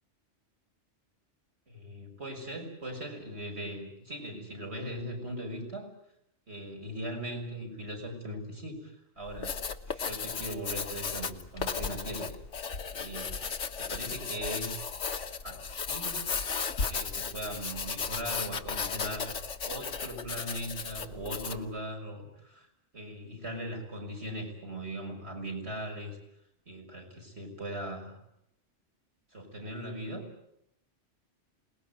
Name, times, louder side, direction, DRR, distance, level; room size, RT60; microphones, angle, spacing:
voice 1, 1.7-5.9 6.5-9.6 9.9-12.3 12.9-13.5 13.8-14.9 15.4-16.4 16.9-19.3 19.6-22.7 22.9-26.2 26.7-28.2 29.3-30.3, right 1 dB, 60° right, 2 dB, 6.4 m, -39 dB
Writing, 9.2-21.7, left 5 dB, 75° left, 1.6 m, -35 dB
27.5 x 20.5 x 9.3 m, 0.78 s
omnidirectional pair, 1.3 m